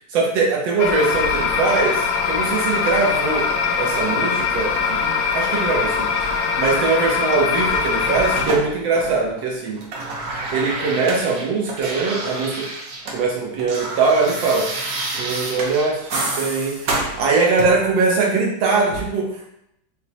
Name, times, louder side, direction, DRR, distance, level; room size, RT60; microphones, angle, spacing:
voice 1, 0.1-3.4 3.8-5.0 5.3-6.1 6.3-9.8 10.5-12.6 13.1-14.6 15.2-19.3, right 4 dB, 85° right, -1 dB, 1.6 m, -21 dB
sound 1, 0.8-8.5, left 5 dB, 75° left, 1.2 m, -22 dB
sound 2, 7.7-9.4 9.7-13.2 13.5-17.9 18.9-19.1, right 2 dB, 65° right, 1.1 m, -29 dB
6.2 x 2.1 x 2.7 m, 0.82 s
omnidirectional pair, 2.0 m